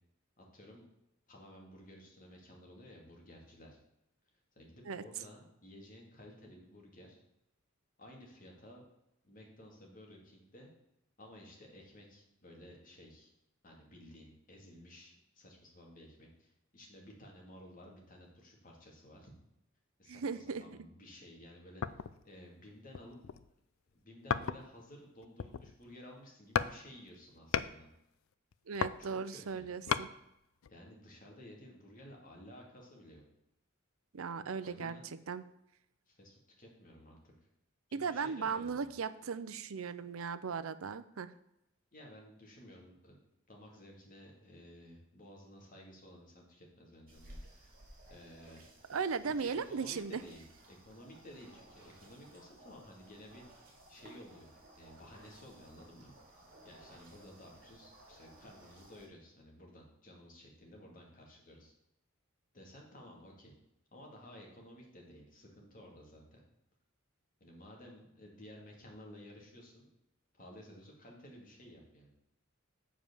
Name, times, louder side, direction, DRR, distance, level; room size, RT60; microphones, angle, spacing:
voice 1, 0.4-0.8 1.3-3.8 4.6-7.2 8.0-8.8 9.2-10.7 11.2-13.3 13.6-19.3 20.0-21.8 22.2-23.2 23.9-27.9 29.0-29.7 30.7-33.2 34.6-35.1 36.1-37.3 37.9-38.9 41.9-43.2 43.5-47.8 48.1-48.6 49.2-53.4 53.9-56.2 56.6-61.7 62.5-63.5 63.9-66.4 67.4-69.9 70.3-72.1, left 1 dB, 40° left, -1 dB, 2.4 m, -54 dB
voice 2, 20.1-20.6 28.7-30.1 34.1-35.4 37.9-41.3 48.9-50.2, right 5 dB, 75° right, 14 dB, 0.5 m, -37 dB
sound 1, 21.8-22.3 22.9-23.5 24.3-24.8 25.2-25.9 26.6-26.8 27.1-27.8 28.5-30.1 30.6-30.7, left 7 dB, 75° left, 0.4 m, -35 dB
sound 2, 47.1-59.1, right 1 dB, 45° right, 2.3 m, -58 dB
7.3 x 4.9 x 7.0 m, 0.84 s
head